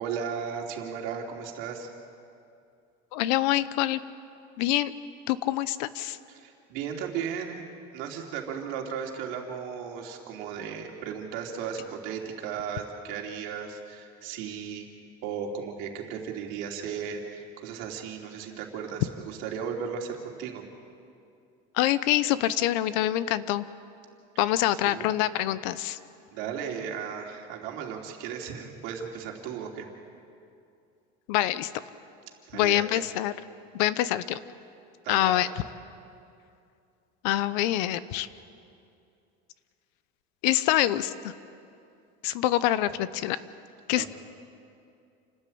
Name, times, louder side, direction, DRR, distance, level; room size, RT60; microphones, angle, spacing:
voice 1, 0.0-1.9 6.3-7.6 7.9-14.9 15.2-20.6 24.3-25.1 26.3-29.9 32.5-33.0 35.0-35.4 44.0-44.1, right 7 dB, 65° right, 1 dB, 3.1 m, -36 dB
voice 2, 3.1-4.0 4.6-4.9 5.3-6.2 21.7-23.7 24.4-26.0 31.3-31.7 32.5-33.3 33.7-34.4 35.1-35.5 37.2-38.3 40.4-41.3 42.2-43.4 43.9-44.1, left 14 dB, 85° left, 16 dB, 0.9 m, -25 dB
28.5 x 13.0 x 8.7 m, 2.5 s
cardioid pair, 170°, 21 cm